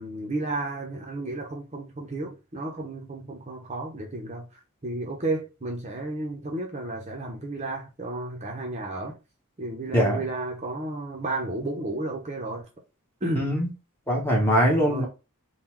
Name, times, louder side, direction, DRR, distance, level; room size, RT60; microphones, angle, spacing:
voice 1, 0.0-9.2 9.6-12.7 13.2-13.6 14.8-15.1, right 2 dB, 30° right, 0.8 m, -33 dB
voice 2, 13.3-13.7 14.1-15.1, equal, 10° left, 1.1 m, -22 dB
3.8 x 2.3 x 4.5 m
head